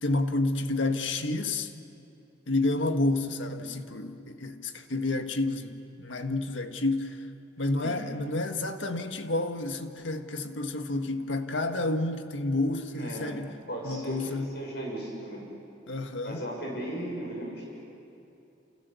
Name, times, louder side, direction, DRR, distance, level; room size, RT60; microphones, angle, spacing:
voice 1, 0.0-1.7 2.5-7.2 7.6-13.5 13.8-14.5 15.9-16.4, left 2 dB, 85° left, 1.6 m, -30 dB
voice 2, 12.9-13.3 13.7-15.5 16.2-17.8, right 1 dB, 60° left, 6.7 m, -36 dB
29.5 x 29.0 x 7.0 m
head